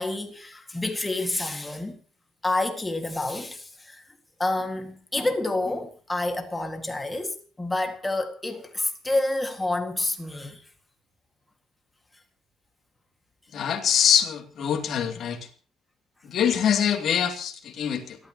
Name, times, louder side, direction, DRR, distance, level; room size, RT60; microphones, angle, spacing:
voice 1, 0.0-2.0 2.4-4.0 4.4-10.6, left 2 dB, 10° left, 1.9 m, -28 dB
voice 2, 13.5-15.4 16.2-18.2, left 8 dB, 45° left, 2.7 m, -24 dB
29.0 x 12.5 x 3.0 m
cardioid pair, 160°, 0 cm